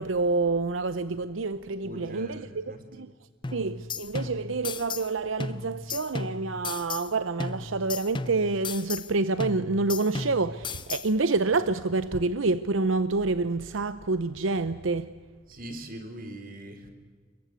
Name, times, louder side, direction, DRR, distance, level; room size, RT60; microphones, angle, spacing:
voice 1, 0.0-2.6 2.9-3.1 3.5-15.1, right 3 dB, 80° right, 0.8 m, -27 dB
voice 2, 1.8-2.8 15.5-16.9, right 1 dB, 45° right, 3.8 m, -41 dB
sound 1, 3.4-5.1 5.4-7.1 7.4-9.1 9.4-11.1, left 4 dB, 25° left, 0.8 m, -35 dB
30.0 x 23.0 x 8.2 m
head